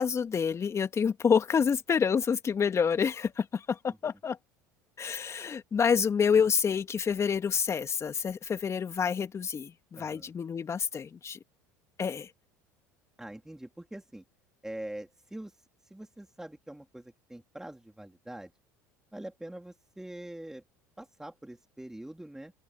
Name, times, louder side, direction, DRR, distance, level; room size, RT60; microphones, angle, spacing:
voice 1, 0.0-4.4 5.0-11.4 12.0-12.3, left 6 dB, 35° left, 2.6 m, -28 dB
voice 2, 10.0-10.3 13.2-14.2 14.6-15.6 15.8-18.5 19.1-20.6 21.0-22.5, right 1 dB, 5° right, 3.3 m, -44 dB
open air
hypercardioid pair, 75°, 9 cm